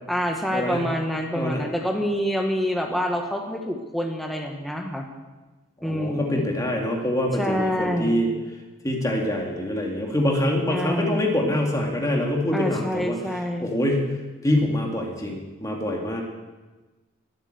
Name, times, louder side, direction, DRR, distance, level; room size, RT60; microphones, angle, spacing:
voice 1, 0.1-5.1 5.8-6.4 7.4-8.3 10.7-11.3 12.5-13.7, equal, ahead, 2 dB, 1.3 m, -27 dB
voice 2, 5.8-8.3 8.8-13.2 13.6-14.1 14.4-16.2, left 1 dB, 15° left, 0 dB, 2.2 m, -25 dB
20.5 x 8.9 x 7.8 m, 1.2 s
head